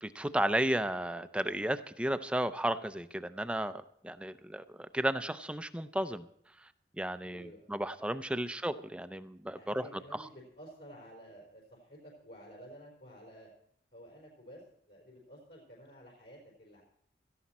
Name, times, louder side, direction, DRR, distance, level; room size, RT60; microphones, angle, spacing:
voice 1, 0.0-6.3 7.0-9.9, right 1 dB, 5° right, 11 dB, 0.5 m, -33 dB
voice 2, 7.2-7.7 9.5-13.5 13.9-16.8, equal, 65° left, -2 dB, 4.3 m, -52 dB
17.0 x 14.5 x 4.3 m, 0.68 s
head